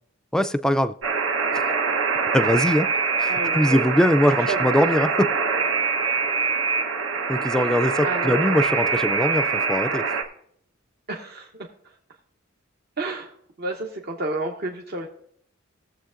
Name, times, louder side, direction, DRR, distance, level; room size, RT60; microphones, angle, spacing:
voice 1, 0.3-1.0 2.3-2.9 3.2-5.3 7.3-10.0, left 1 dB, 5° left, 11 dB, 0.3 m, -21 dB
Alarm, 1.0-10.2, right 5 dB, 75° right, 1.0 m, -24 dB
voice 2, 3.3-4.0 4.4-4.7 8.0-8.7 11.1-12.0 13.0-15.1, right 2 dB, 50° right, 0 dB, 0.9 m, -31 dB
19.5 x 7.3 x 2.5 m, 0.69 s
head